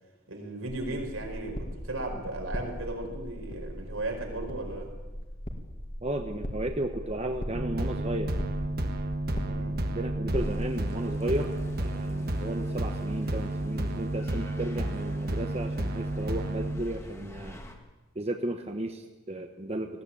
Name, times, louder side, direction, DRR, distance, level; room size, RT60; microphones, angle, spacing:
voice 1, 0.3-4.9 9.3-9.8, right 2 dB, 75° right, 2 dB, 4.9 m, -36 dB
sound 1, 0.7-10.4, equal, 40° left, 2.2 m, -39 dB
voice 2, 6.0-8.4 9.9-11.5 11.8-17.6 18.1-20.0, right 1 dB, 30° right, 5 dB, 1.0 m, -34 dB
sound 2, 7.5-16.8, right 1 dB, 45° right, 1.6 m, -31 dB
sound 3, 10.4-17.8, equal, 15° left, 1.9 m, -45 dB
19.5 x 16.0 x 8.6 m, 1.1 s
head